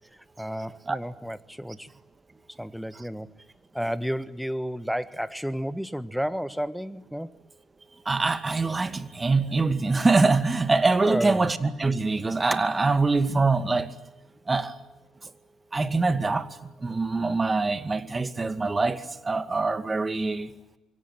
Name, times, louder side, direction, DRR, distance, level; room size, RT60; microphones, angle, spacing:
voice 1, 0.4-1.9 2.6-3.3 3.7-7.3 11.0-11.5, equal, ahead, 1.4 m, -31 dB
voice 2, 8.1-13.9 14.5-14.8 15.7-20.5, right 3 dB, 25° right, 2.3 m, -24 dB
26.5 x 24.0 x 9.3 m
hypercardioid pair, 50°, 0 cm